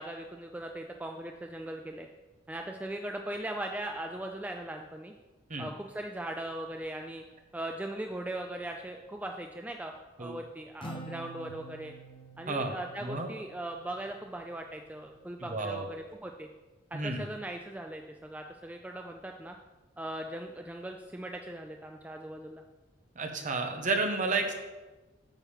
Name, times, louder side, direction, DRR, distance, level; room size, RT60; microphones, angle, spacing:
voice 1, 0.0-2.1 2.5-5.1 5.6-7.2 7.5-11.9 12.4-16.5 16.9-19.6 20.0-22.6, right 1 dB, 10° right, 3 dB, 0.4 m, -39 dB
Acoustic guitar, 10.8-14.5, right 2 dB, 25° left, 0.7 m, -47 dB
voice 2, 12.5-13.3 15.4-15.9 16.9-17.3 23.1-24.5, right 3 dB, 40° right, 4 dB, 1.0 m, -31 dB
9.1 x 7.0 x 3.6 m, 1.2 s
head